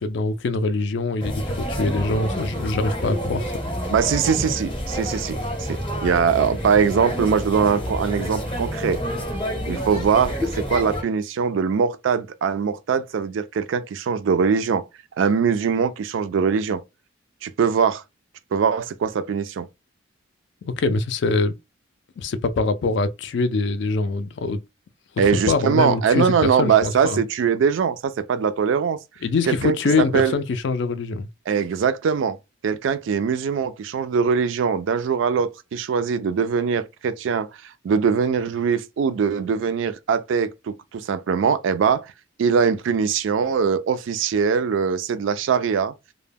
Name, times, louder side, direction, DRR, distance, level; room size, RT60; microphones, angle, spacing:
voice 1, 0.0-3.5 20.6-21.5 22.2-24.6 25.5-27.2 29.2-31.3, left 3 dB, 60° left, 0.3 m, -23 dB
sound 1, 1.2-11.0, equal, 25° left, 0.7 m, -28 dB
voice 2, 3.9-9.0 9.7-14.9 15.2-16.8 17.4-18.0 18.5-19.7 25.2-29.0 29.5-30.3 31.5-32.4 32.6-42.1 42.4-45.9, right 6 dB, 70° right, 0.3 m, -22 dB
2.2 x 2.1 x 3.3 m
head